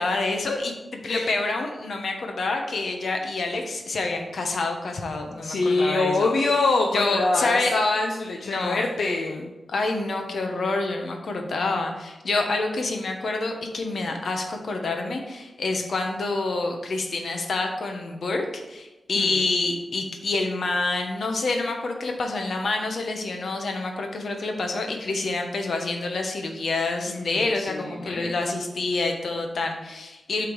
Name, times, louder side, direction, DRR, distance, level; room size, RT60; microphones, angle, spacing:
voice 1, 0.0-6.5 6.9-7.7 8.4-8.8 9.7-30.5, left 3 dB, 65° left, 3 dB, 1.0 m, -27 dB
voice 2, 5.4-9.5 19.2-19.3 27.1-27.4 27.7-28.3, left 3 dB, 85° left, 0 dB, 0.7 m, -24 dB
8.4 x 3.7 x 4.6 m, 1.1 s
wide cardioid pair, 175°, 0 cm